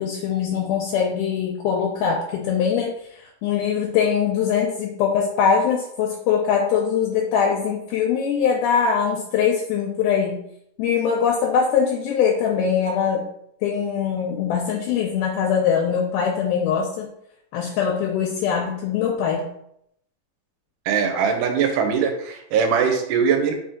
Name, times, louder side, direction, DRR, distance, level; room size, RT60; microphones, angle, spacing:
voice 1, 0.0-10.4 10.8-13.3 13.6-17.1 17.5-19.5, left 7 dB, 80° left, -1 dB, 2.1 m, -22 dB
voice 2, 20.9-23.5, right 6 dB, 85° right, 4 dB, 2.2 m, -21 dB
4.9 x 2.7 x 3.6 m, 0.74 s
omnidirectional pair, 3.7 m